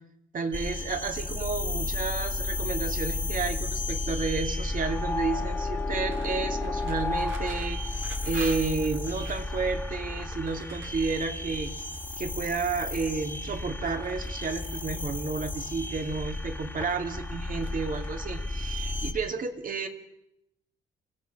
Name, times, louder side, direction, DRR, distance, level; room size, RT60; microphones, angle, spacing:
voice 1, 0.3-11.7 12.2-19.9, right 4 dB, 45° right, 6 dB, 2.4 m, -31 dB
sound 1, 0.5-19.1, left 2 dB, 10° left, 1.9 m, -33 dB
sound 2, 6.1-9.5 10.2-12.3 12.8-13.4 13.8-14.8 15.6-16.3 16.6-17.2 17.6-18.4, right 5 dB, 75° right, 3.4 m, -48 dB
29.5 x 16.5 x 6.2 m, 0.83 s
cardioid pair, 90°, 20 cm